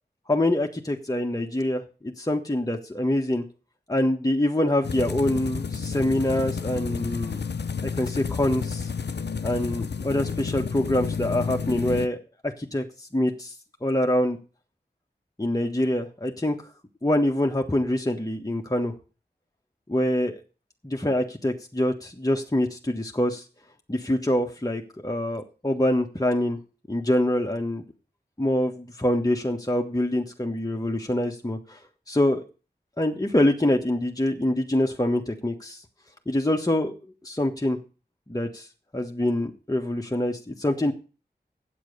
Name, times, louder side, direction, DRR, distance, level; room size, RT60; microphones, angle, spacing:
voice 1, 0.3-3.4 3.9-7.4 7.8-8.9 9.4-12.2 12.6-13.5 13.8-14.4 15.4-16.6 17.0-18.9 19.9-20.4 20.8-23.4 23.9-26.6 26.9-27.8 28.4-31.8 32.1-32.4 33.0-35.8 36.3-36.9 37.2-37.8 38.3-38.7 38.9-40.9, left 1 dB, 20° left, 2 dB, 1.5 m, -25 dB
sound 1, 4.8-12.1, left 6 dB, 75° left, 0.7 m, -31 dB
8.7 x 7.4 x 6.8 m, 0.34 s
wide cardioid pair, 40°, 18 cm